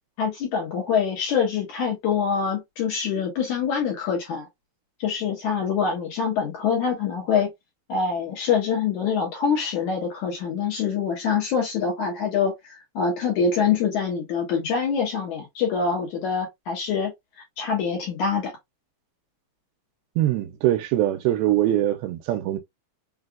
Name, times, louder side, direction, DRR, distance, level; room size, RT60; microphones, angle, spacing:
voice 1, 0.2-4.5 5.0-7.5 7.9-17.1 17.6-18.5, left 6 dB, 70° left, 2.0 m, -25 dB
voice 2, 20.2-22.6, right 13 dB, 80° right, 2.5 m, -22 dB
5.8 x 2.4 x 2.4 m
omnidirectional pair, 4.4 m